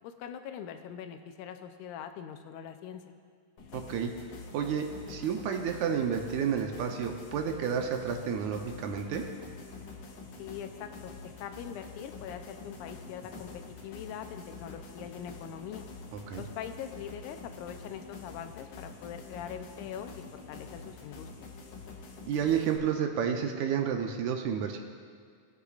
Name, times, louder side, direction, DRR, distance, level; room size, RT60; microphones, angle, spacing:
voice 1, 0.0-3.0 10.4-13.5 13.8-15.9 16.4-21.3, left 9 dB, 90° left, 7 dB, 2.2 m, -42 dB
sound 1, 3.6-22.8, left 4 dB, 65° left, 1.9 m, -47 dB
voice 2, 3.7-4.1 4.5-9.2 16.1-16.4 22.3-24.8, right 7 dB, 80° right, 4 dB, 2.1 m, -30 dB
20.5 x 8.3 x 2.4 m, 2.1 s
omnidirectional pair, 3.5 m